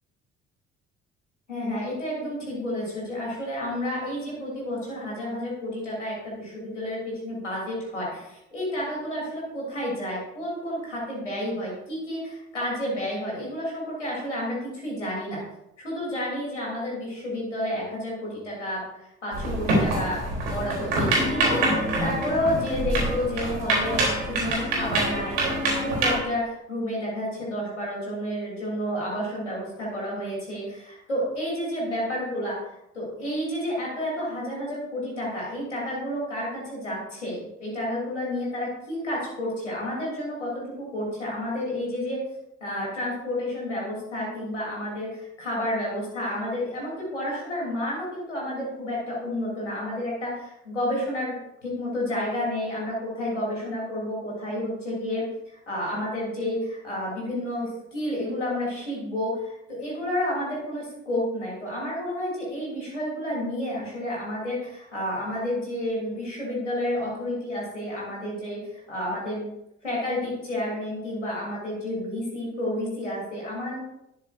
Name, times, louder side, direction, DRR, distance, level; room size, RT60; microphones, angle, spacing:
voice 1, 1.5-15.4 15.8-42.2 42.6-51.3 51.6-69.5 69.8-73.8, left 1 dB, 90° left, -5 dB, 3.3 m, -30 dB
sound 1, 19.3-26.2, right 1 dB, 80° right, 3.4 m, -25 dB
13.0 x 11.5 x 2.6 m, 0.86 s
figure-of-eight pair, 50°, 35 cm